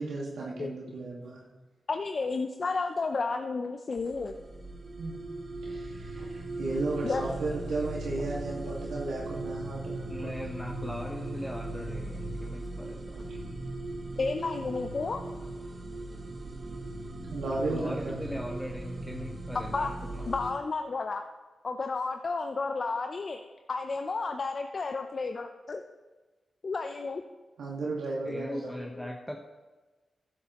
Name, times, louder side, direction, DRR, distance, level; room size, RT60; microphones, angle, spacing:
voice 1, 0.0-1.4 5.0-5.1 5.6-10.3 13.2-13.3 14.1-14.2 17.2-18.2 27.6-28.7, right 3 dB, 85° right, -4 dB, 1.9 m, -34 dB
voice 2, 1.9-4.4 7.0-7.2 8.2-8.8 14.2-15.2 18.1-18.2 19.5-19.9 20.2-21.2 21.6-23.4 23.7-25.8 26.6-27.2 28.3-29.1, left 4 dB, 55° left, 6 dB, 0.6 m, -32 dB
sound 1, 4.0-20.5, right 2 dB, 60° right, 1.7 m, -38 dB
voice 3, 10.1-13.4 17.7-20.3 28.2-29.4, equal, 5° left, 1 dB, 1.1 m, -40 dB
12.0 x 10.5 x 3.1 m, 1.2 s
supercardioid pair, 45°, 0 cm